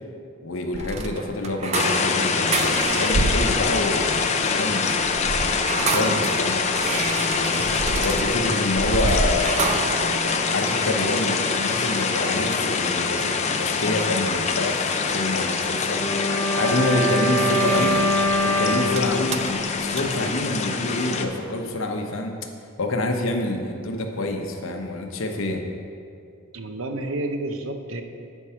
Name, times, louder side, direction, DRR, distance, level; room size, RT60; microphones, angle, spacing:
voice 1, 0.4-5.0 5.6-6.6 7.3-9.8 10.5-16.1 16.6-18.0 18.4-22.3 22.8-25.6, left 2 dB, 65° left, 3 dB, 0.8 m, -27 dB
sound 1, 0.7-13.1 16.8-20.5, right 3 dB, 30° right, 0.3 m, -29 dB
sound 2, 1.7-21.3, left 5 dB, 35° left, 0.4 m, -25 dB
Bowed string instrument, 15.8-20.2 20.5-20.7, equal, 5° left, 1.3 m, -24 dB
voice 2, 17.0-17.3 26.5-28.0, right 2 dB, 70° right, 6 dB, 0.7 m, -30 dB
8.4 x 4.5 x 5.6 m, 2.5 s
head